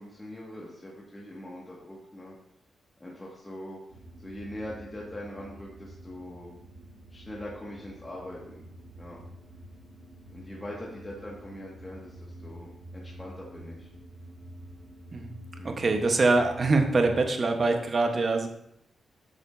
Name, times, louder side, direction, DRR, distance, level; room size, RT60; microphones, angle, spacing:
voice 1, 0.0-2.3 3.0-3.8 4.2-6.5 7.1-8.6 9.0-9.2 10.3-13.9 15.6-15.9, left 1 dB, 20° left, -4 dB, 1.9 m, -42 dB
sound 1, 3.9-17.3, equal, 85° right, 1.7 m, -47 dB
voice 2, 15.6-18.5, right 3 dB, 45° right, 4 dB, 1.2 m, -24 dB
9.0 x 6.7 x 2.7 m, 0.76 s
cardioid pair, 70°, 0 cm